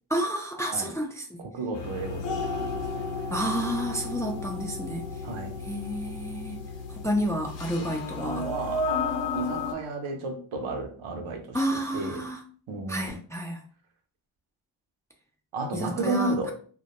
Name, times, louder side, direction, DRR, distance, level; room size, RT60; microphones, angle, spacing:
voice 1, 0.1-1.4 3.3-5.0 5.7-6.6 6.9-8.5 11.5-12.4 12.9-13.6 15.7-16.5, equal, 5° left, 0.4 m, -30 dB
voice 2, 1.4-3.1 5.2-5.6 7.8-8.9 9.3-11.6 11.9-12.3 12.7-13.2 15.5-16.5, right 3 dB, 75° right, 0.7 m, -33 dB
sound 1, 1.7-9.7, left 3 dB, 60° left, 0.6 m, -33 dB
2.1 x 2.1 x 2.9 m
cardioid pair, 60°, 50 cm